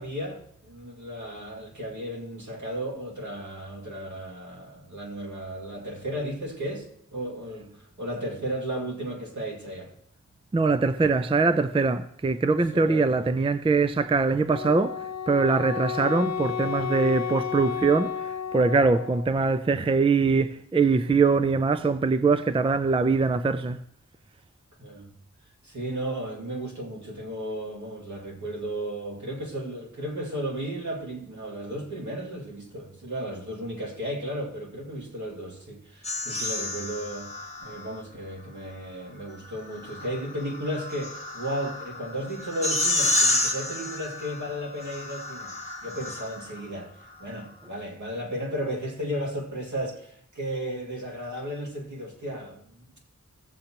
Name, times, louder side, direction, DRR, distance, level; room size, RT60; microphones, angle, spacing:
voice 1, 0.0-9.9 12.7-13.2 24.8-25.1 25.6-46.9 47.2-52.8, right 1 dB, 70° right, 2.3 m, -34 dB
voice 2, 10.5-15.0 15.3-23.8, right 4 dB, 20° right, 0.4 m, -23 dB
Wind instrument woodwind instrument, 14.5-19.3, left 8 dB, 60° left, 0.5 m, -32 dB
sound 1, 36.0-38.0 39.5-46.6, left 2 dB, 20° left, 1.4 m, -30 dB
14.5 x 7.9 x 2.9 m
wide cardioid pair, 65°, 30 cm